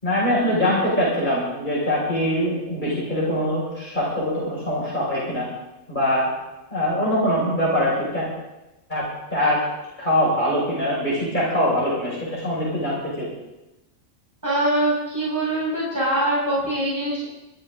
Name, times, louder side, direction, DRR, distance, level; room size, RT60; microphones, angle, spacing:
voice 1, 0.0-5.5 5.9-6.3 6.7-8.3 8.9-9.1 9.3-9.6 10.0-13.3, equal, 35° left, -7 dB, 6.0 m, -23 dB
voice 2, 14.4-17.2, right 1 dB, 15° right, -8 dB, 6.2 m, -23 dB
22.0 x 13.0 x 3.8 m, 0.96 s
omnidirectional pair, 1.4 m